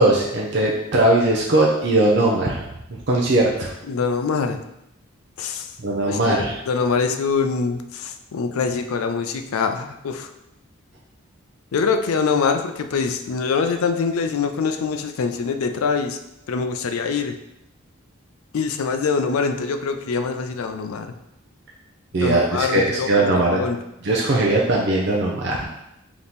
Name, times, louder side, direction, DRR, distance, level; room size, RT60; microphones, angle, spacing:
voice 1, 0.0-2.6 3.1-3.7 5.8-6.5 22.1-23.6 24.0-25.6, right 2 dB, 50° right, -3 dB, 0.5 m, -19 dB
voice 2, 3.9-4.6 5.4-5.8 6.1-10.3 11.7-16.2 16.5-17.4 18.5-21.1 22.2-23.8, left 5 dB, 85° left, 7 dB, 0.4 m, -24 dB
3.5 x 2.9 x 4.0 m, 0.85 s
head